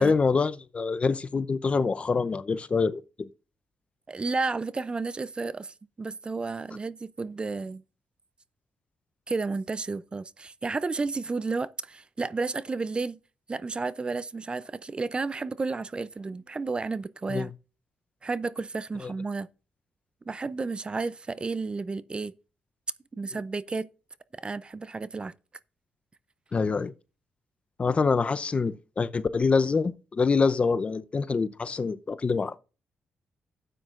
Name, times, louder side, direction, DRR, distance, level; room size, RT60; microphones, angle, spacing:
voice 1, 0.0-3.0 17.3-17.5 19.0-19.1 26.5-26.9 27.8-32.6, left 4 dB, 40° left, 0.6 m, -25 dB
voice 2, 4.1-7.8 9.3-13.2 13.5-17.5 18.2-19.5 20.3-22.3 23.1-23.9 24.3-25.3, right 3 dB, 30° right, 0.5 m, -32 dB
12.5 x 9.1 x 2.5 m
cardioid pair, 75°, 3 cm